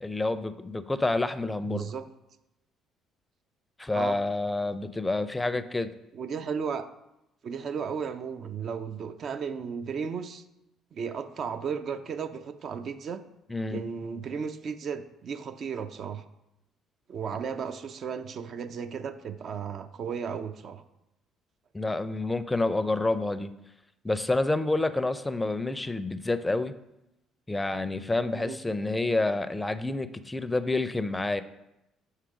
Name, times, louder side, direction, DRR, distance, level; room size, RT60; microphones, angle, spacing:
voice 1, 0.0-1.9 3.8-5.9 13.5-13.8 21.7-23.5 24.0-26.8 27.5-31.4, left 2 dB, 15° left, 12 dB, 0.5 m, -28 dB
voice 2, 1.6-2.1 3.9-4.2 5.5-5.6 6.1-6.9 7.4-10.4 10.9-13.2 13.7-16.2 17.1-20.8 28.3-28.6, right 6 dB, 55° right, 9 dB, 0.5 m, -34 dB
5.6 x 4.9 x 4.8 m, 0.89 s
hypercardioid pair, 60°, 0 cm